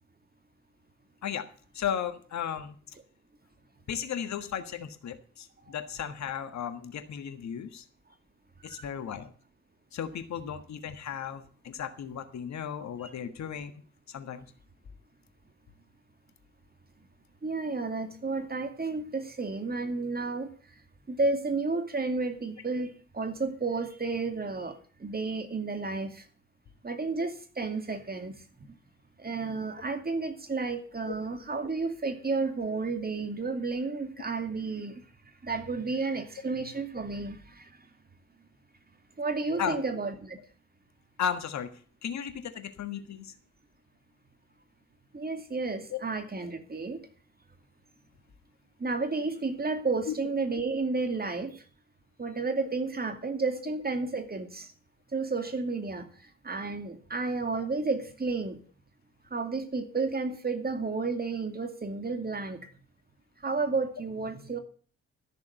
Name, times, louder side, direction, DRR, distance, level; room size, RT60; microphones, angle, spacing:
voice 1, 1.7-2.8 3.9-7.8 8.6-9.3 9.9-13.7 14.1-14.5 31.1-31.2 39.6-39.8 41.2-41.7 42.0-43.3 45.9-46.0 50.1-50.2 57.5-57.7, left 8 dB, 60° left, 9 dB, 1.5 m, -35 dB
voice 2, 17.4-20.5 21.1-26.2 26.8-28.7 29.2-35.0 35.4-37.7 39.2-40.4 45.1-47.1 48.8-51.6 52.2-54.7 55.1-58.6 59.3-62.7 63.4-64.6, right 3 dB, 30° right, 8 dB, 2.4 m, -32 dB
13.5 x 6.9 x 8.0 m, 0.42 s
hypercardioid pair, 40°, 31 cm